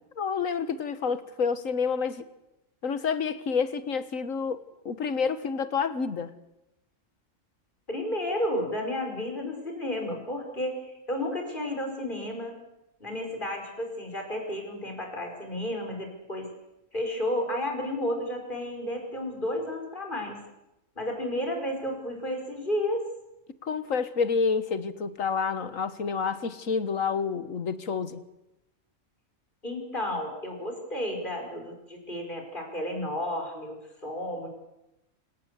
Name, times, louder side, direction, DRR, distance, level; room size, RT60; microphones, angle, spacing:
voice 1, 0.2-2.2 2.8-6.3 23.6-28.2, left 5 dB, 80° left, 12 dB, 1.8 m, -29 dB
voice 2, 7.9-12.6 13.0-16.5 16.9-20.4 21.0-23.1 29.6-34.5, left 1 dB, 40° left, 3 dB, 5.5 m, -32 dB
27.0 x 18.0 x 8.3 m, 0.90 s
omnidirectional pair, 1.4 m